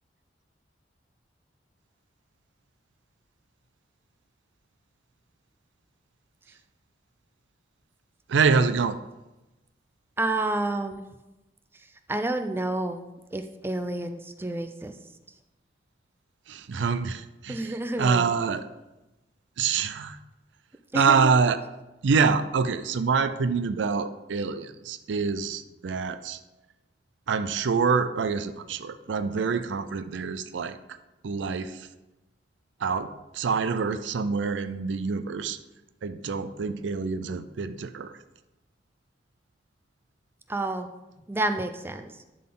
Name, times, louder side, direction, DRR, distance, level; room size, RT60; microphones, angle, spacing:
voice 1, 8.3-9.0 16.5-18.7 19.6-20.2 20.9-21.6 22.0-26.4 27.3-31.0 31.2-31.9 32.8-35.6 36.0-38.2, right 5 dB, 80° right, 11 dB, 0.4 m, -26 dB
voice 2, 10.2-11.0 12.1-14.9 17.5-18.3 20.9-21.3 40.5-40.9 41.3-42.1, right 2 dB, 10° right, 7 dB, 0.4 m, -29 dB
11.0 x 3.9 x 3.8 m, 1.0 s
head